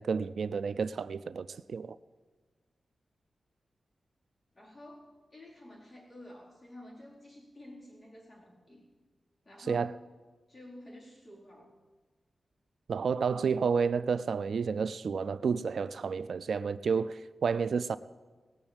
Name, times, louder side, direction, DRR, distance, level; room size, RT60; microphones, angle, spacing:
voice 1, 0.0-2.0 9.7-9.9 12.9-18.0, right 5 dB, 70° right, 0.3 m, -30 dB
voice 2, 4.5-8.8 9.4-10.1 10.5-11.7, left 1 dB, 25° left, 4.5 m, -50 dB
18.5 x 7.0 x 8.9 m
wide cardioid pair, 130°, 0 cm